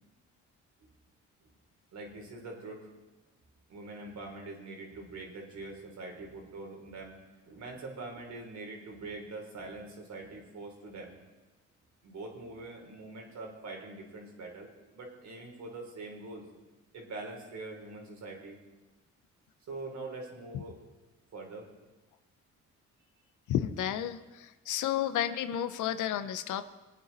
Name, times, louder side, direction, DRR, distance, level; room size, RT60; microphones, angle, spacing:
voice 1, 1.9-2.9 3.7-7.2 7.4-11.2 12.0-16.5 16.9-18.6 19.7-20.8 21.3-21.7, right 2 dB, 65° right, 1 dB, 3.6 m, -43 dB
voice 2, 23.5-26.7, left 11 dB, 80° left, 13 dB, 0.8 m, -32 dB
22.5 x 9.3 x 4.1 m, 1.1 s
cardioid pair, 90°, 30 cm